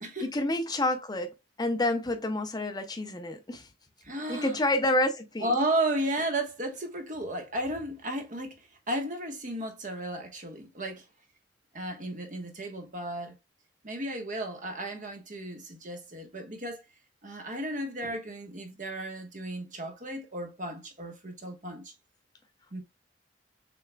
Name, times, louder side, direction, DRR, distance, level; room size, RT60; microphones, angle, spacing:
voice 1, 0.3-3.7 4.3-5.6, left 1 dB, 20° left, 0.6 m, -29 dB
voice 2, 4.0-4.6 5.4-8.6 8.9-11.0 11.7-13.3 13.8-16.8 17.2-21.9 22.7-22.8, right 1 dB, 45° right, 1.3 m, -34 dB
6.6 x 3.5 x 2.2 m
head